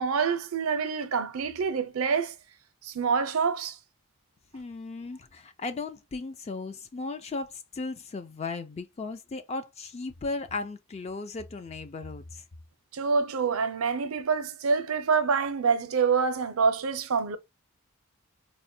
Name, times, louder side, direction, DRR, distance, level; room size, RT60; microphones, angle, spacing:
voice 1, 0.0-2.3 2.8-3.8 12.9-17.4, right 5 dB, 85° right, 0.6 m, -26 dB
voice 2, 4.5-12.4, left 3 dB, 30° left, 0.4 m, -36 dB
4.2 x 2.1 x 2.6 m
head